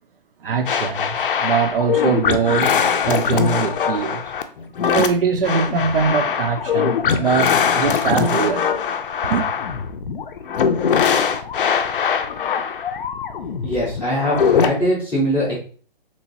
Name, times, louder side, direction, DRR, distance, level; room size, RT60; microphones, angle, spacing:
voice 1, 0.4-4.3 4.9-8.7 9.2-9.4, right 6 dB, 70° right, 0.5 m, -22 dB
sound 1, 0.7-14.7, left 7 dB, 65° left, 0.5 m, -21 dB
voice 2, 13.6-15.5, equal, 5° left, 0.5 m, -22 dB
3.0 x 2.9 x 2.8 m
hypercardioid pair, 160°, 29 cm